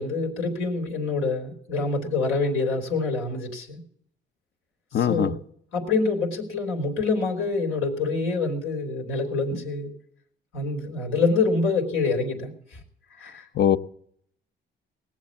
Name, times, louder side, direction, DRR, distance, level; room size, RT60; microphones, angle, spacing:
voice 1, 0.0-3.8 4.9-5.3 5.7-9.9 10.5-12.8 13.2-13.5, left 3 dB, 90° left, 3.5 m, -26 dB
voice 2, 4.9-5.3 13.6-13.8, left 9 dB, 55° left, 0.7 m, -20 dB
18.5 x 7.4 x 8.5 m
cardioid pair, 90°, 20 cm